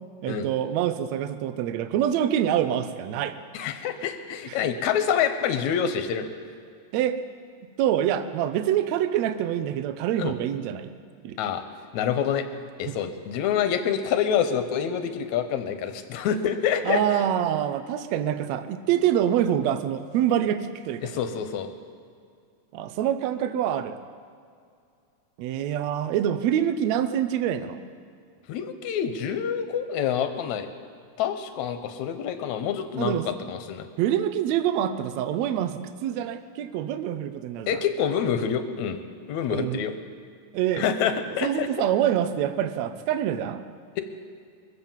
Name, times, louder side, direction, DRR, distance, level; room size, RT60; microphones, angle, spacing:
voice 1, 0.2-3.4 4.5-4.6 6.9-7.2 7.8-10.9 11.2-11.4 12.8-12.9 16.8-21.2 22.7-24.0 25.4-27.8 33.0-33.3 34.0-37.7 39.5-39.8 40.5-40.9 41.4-43.6, right 10 dB, 75° right, 10 dB, 1.6 m, -26 dB
voice 2, 3.5-6.3 10.2-10.3 11.4-11.6 11.9-12.5 12.8-17.2 21.0-21.7 28.5-30.7 31.2-33.9 37.7-39.0 39.3-39.9 40.8-41.7, left 8 dB, 70° left, 9 dB, 2.0 m, -27 dB
23.5 x 8.1 x 7.3 m, 2.3 s
omnidirectional pair, 3.9 m